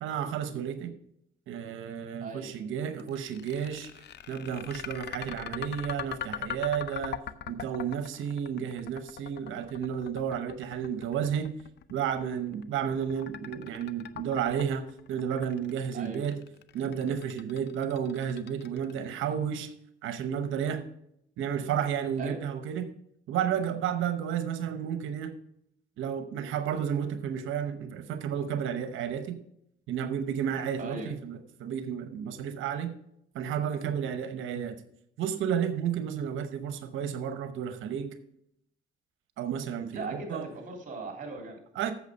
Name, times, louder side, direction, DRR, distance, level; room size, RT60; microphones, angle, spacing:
voice 1, 0.0-0.9 1.5-7.2 7.5-11.5 11.9-16.4 16.7-19.7 20.0-20.8 21.4-22.9 23.3-25.3 26.0-29.4 29.9-32.9 33.3-34.8 35.2-38.1 39.4-40.5 41.8-41.9, right 8 dB, 80° right, 9 dB, 0.8 m, -32 dB
voice 2, 2.2-2.5 15.9-16.4 22.2-22.4 30.8-31.1 39.9-41.6, right 3 dB, 40° right, 2 dB, 3.4 m, -38 dB
sound 1, 3.0-19.1, left 10 dB, 60° left, 0.6 m, -41 dB
8.2 x 6.9 x 5.3 m, 0.74 s
cardioid pair, 90°, 20 cm